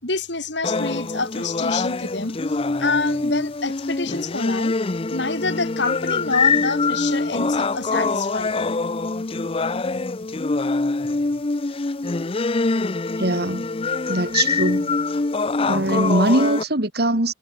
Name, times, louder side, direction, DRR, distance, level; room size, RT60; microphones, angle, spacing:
voice 1, 0.0-4.7 5.1-8.6, left 3 dB, 65° left, 6.7 m, -27 dB
sound 1, 0.6-16.6, left 3 dB, 30° left, 0.6 m, -24 dB
voice 2, 13.2-13.7 14.1-14.9 15.6-17.3, right 1 dB, 55° right, 2.9 m, -21 dB
head